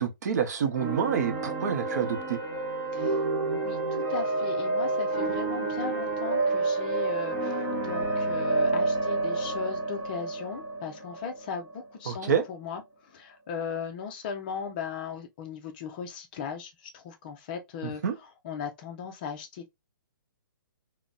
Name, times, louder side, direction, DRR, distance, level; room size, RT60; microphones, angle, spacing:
voice 1, 0.0-2.4 12.1-12.4 17.8-18.1, right 7 dB, 50° right, 0.6 m, -28 dB
sound 1, 0.7-12.4, right 2 dB, 20° right, 1.1 m, -29 dB
voice 2, 3.5-11.7 12.0-12.8 13.1-18.0 18.4-19.8, left 6 dB, 25° left, 0.5 m, -37 dB
3.8 x 2.1 x 2.2 m
hypercardioid pair, 165°, 12 cm